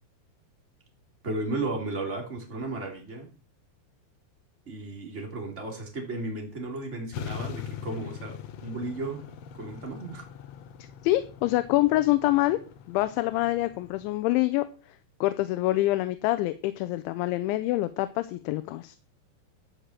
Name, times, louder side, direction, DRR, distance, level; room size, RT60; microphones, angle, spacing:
voice 1, 1.2-3.3 4.6-9.2 9.5-10.3, right 2 dB, 20° right, 1 dB, 3.0 m, -34 dB
sound 1, 7.1-14.2, left 9 dB, 75° left, 2.8 m, -42 dB
voice 2, 11.0-12.6 12.9-14.7 15.2-19.0, left 17 dB, 90° left, 12 dB, 3.1 m, -25 dB
12.5 x 6.8 x 7.5 m, 0.38 s
omnidirectional pair, 5.2 m